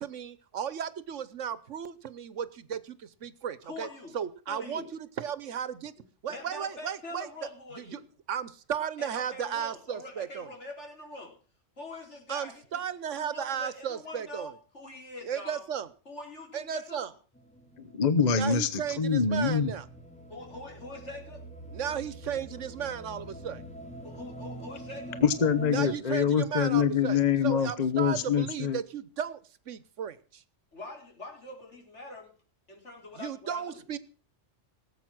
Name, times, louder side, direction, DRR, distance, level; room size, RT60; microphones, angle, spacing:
voice 1, 0.0-3.9 4.1-5.9 6.2-7.3 7.7-8.0 8.3-10.5 12.3-14.5 15.2-15.9 16.5-17.1 18.4-19.8 21.7-23.6 25.7-27.2 27.4-29.4 29.7-30.4 33.2-34.0, right 8 dB, 85° right, 16 dB, 1.3 m, -35 dB
voice 2, 3.6-4.2 4.5-4.9 6.0-8.0 9.0-11.3 11.8-12.8 13.1-15.6 16.1-17.1 20.3-21.4 24.0-25.2 30.7-32.3 32.7-33.8, left 2 dB, 70° left, 0 dB, 4.5 m, -44 dB
sound 1, 17.3-26.0, right 1 dB, 5° left, 1.8 m, -45 dB
voice 3, 17.8-19.7 25.2-28.8, left 7 dB, 35° left, 12 dB, 1.0 m, -25 dB
18.5 x 8.1 x 6.0 m, 0.39 s
omnidirectional pair, 1.2 m